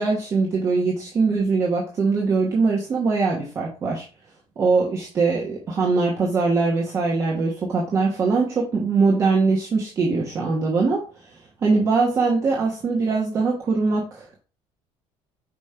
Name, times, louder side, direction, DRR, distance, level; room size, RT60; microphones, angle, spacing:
voice 1, 0.0-4.0 4.6-11.3 11.6-14.2, right 4 dB, 25° right, -3 dB, 1.3 m, -22 dB
5.3 x 5.1 x 4.4 m, 0.36 s
cardioid pair, 175°, 11 cm